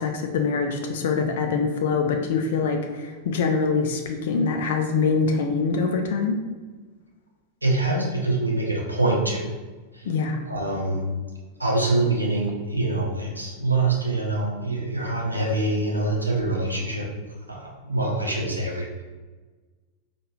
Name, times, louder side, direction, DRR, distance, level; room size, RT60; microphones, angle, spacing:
voice 1, 0.0-6.4 10.1-10.4, left 4 dB, 55° left, 4 dB, 0.4 m, -24 dB
voice 2, 7.6-9.5 9.9-10.1 10.4-11.0 11.6-17.1 17.5-19.0, right 2 dB, 85° right, -1 dB, 0.7 m, -25 dB
4.6 x 2.5 x 3.1 m, 1.3 s
figure-of-eight pair, 90°, 0 cm